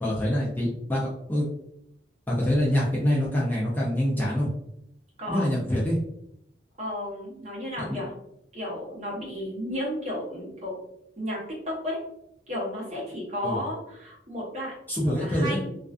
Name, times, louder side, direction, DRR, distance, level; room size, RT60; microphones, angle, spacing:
voice 1, 0.0-1.5 2.3-4.5 5.3-6.0 7.9-8.0 13.4-13.6 14.9-15.6, equal, 10° left, -6 dB, 0.4 m, -25 dB
voice 2, 6.8-8.1 8.5-10.8 11.2-12.0 12.5-14.7 15.0-15.7, left 1 dB, 40° right, -4 dB, 0.8 m, -33 dB
2.4 x 2.3 x 2.3 m, 0.76 s
head